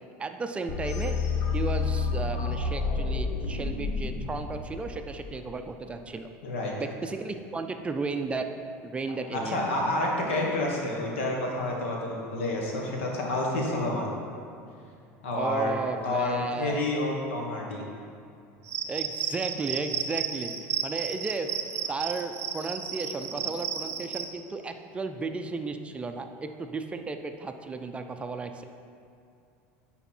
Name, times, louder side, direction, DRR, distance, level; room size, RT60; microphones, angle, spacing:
voice 1, 0.2-1.2 1.5-6.3 6.7-8.5 8.8-9.7 15.3-16.8 18.9-20.5 20.8-21.5 21.9-28.6, right 3 dB, 20° right, 6 dB, 0.4 m, -34 dB
sound 1, 0.7-5.6, left 4 dB, 50° left, 0.8 m, -30 dB
voice 2, 9.3-14.1 15.2-15.8 16.0-17.8, left 2 dB, 90° left, -1 dB, 1.5 m, -29 dB
Cricket, 18.6-24.3, right 8 dB, 45° right, 0.8 m, -33 dB
9.8 x 4.1 x 4.4 m, 2.5 s
supercardioid pair, 110°, 6 cm